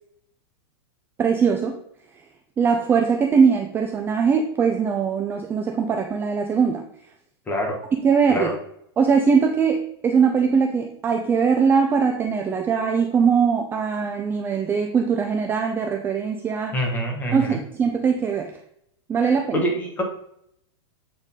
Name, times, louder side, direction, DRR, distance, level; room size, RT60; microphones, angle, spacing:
voice 1, 1.2-1.8 2.6-6.9 8.0-8.5 9.0-16.7 17.3-18.6 19.1-19.6, right 6 dB, 15° right, 4 dB, 0.4 m, -21 dB
voice 2, 7.5-7.8 8.3-8.5 16.7-17.6 19.5-20.0, equal, 10° left, 1 dB, 1.3 m, -25 dB
8.1 x 4.0 x 3.6 m, 0.72 s
supercardioid pair, 150°, 15 cm